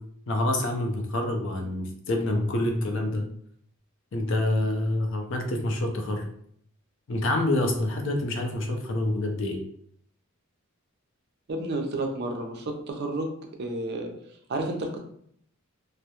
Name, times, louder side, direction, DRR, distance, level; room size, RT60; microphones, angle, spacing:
voice 1, 0.3-3.3 4.1-6.3 7.1-9.6, left 1 dB, 60° left, 3 dB, 0.5 m, -27 dB
voice 2, 11.5-13.3 13.6-14.1 14.5-15.0, right 2 dB, 50° right, 3 dB, 0.4 m, -30 dB
2.2 x 2.0 x 2.8 m, 0.64 s
head